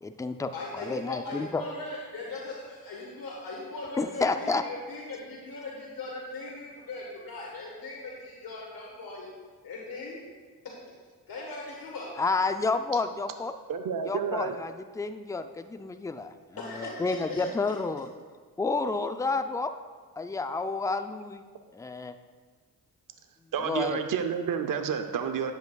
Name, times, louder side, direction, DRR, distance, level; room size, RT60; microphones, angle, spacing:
voice 1, 0.0-1.6 4.0-4.6 12.2-13.5 14.0-18.1 18.6-19.7 20.2-21.4 21.7-22.1 23.6-24.0, left 3 dB, 10° left, 9 dB, 0.4 m, -30 dB
voice 2, 0.5-9.3 9.6-10.3 11.3-12.1 16.6-17.4, left 2 dB, 65° left, -3 dB, 1.5 m, -39 dB
voice 3, 13.7-14.5 23.5-25.5, right 7 dB, 60° right, 7 dB, 0.6 m, -30 dB
10.5 x 8.0 x 2.3 m, 1.5 s
cardioid pair, 70°, 38 cm